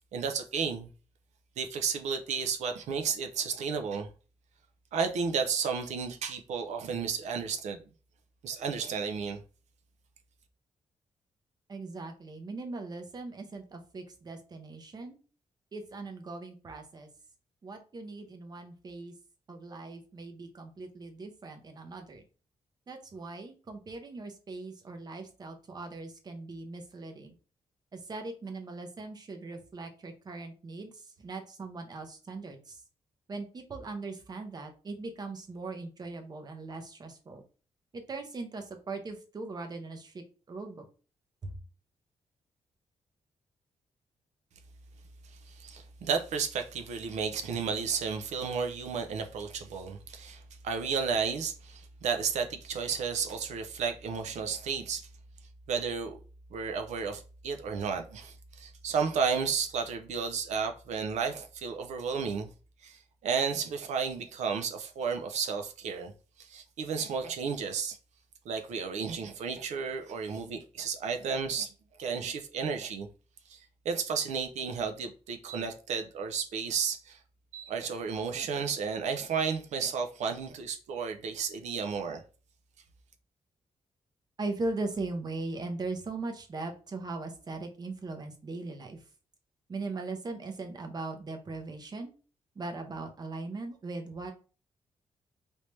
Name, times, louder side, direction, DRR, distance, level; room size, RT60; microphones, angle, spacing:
voice 1, 0.1-0.9 1.6-4.1 4.9-7.8 8.4-9.4 45.5-55.1 55.7-56.2 56.5-62.5 62.8-66.1 66.4-68.0 68.5-71.7 72.0-73.1 73.5-73.6 73.8-77.2 77.5-82.2, right 6 dB, 85° right, 0.5 m, -32 dB
voice 2, 11.7-15.2 15.7-17.1 17.6-19.1 19.5-22.2 22.9-27.3 27.9-32.8 33.3-37.4 37.9-40.9 41.4-41.6 84.4-89.0 89.7-92.1 92.6-94.3, right 3 dB, 35° right, 0.7 m, -39 dB
3.3 x 2.7 x 3.1 m
cardioid pair, 120°, 12 cm